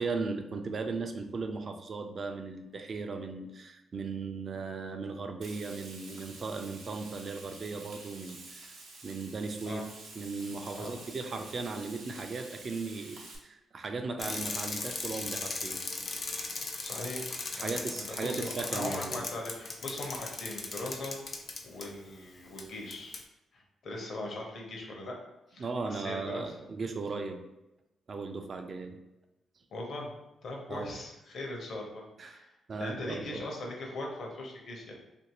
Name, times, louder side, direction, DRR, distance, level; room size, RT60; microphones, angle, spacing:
voice 1, 0.0-8.7 9.0-9.8 10.2-15.8 17.5-19.2 25.6-27.4 28.1-29.0 30.7-31.0 32.2-32.4 32.7-33.4, right 4 dB, 45° right, 6 dB, 0.4 m, -37 dB
Frying (food), 5.4-13.4, right 3 dB, 85° right, 0.7 m, -49 dB
Bicycle, 14.2-21.9 22.6-22.7 22.9-23.2, left 3 dB, 45° left, 0.4 m, -38 dB
voice 2, 16.8-17.3 17.6-21.2 21.6-23.2 23.5-25.2 25.5-26.5 29.7-30.1 30.4-34.9, left 2 dB, 65° left, 0 dB, 0.8 m, -40 dB
2.9 x 2.6 x 2.9 m, 0.95 s
cardioid pair, 80°, 0 cm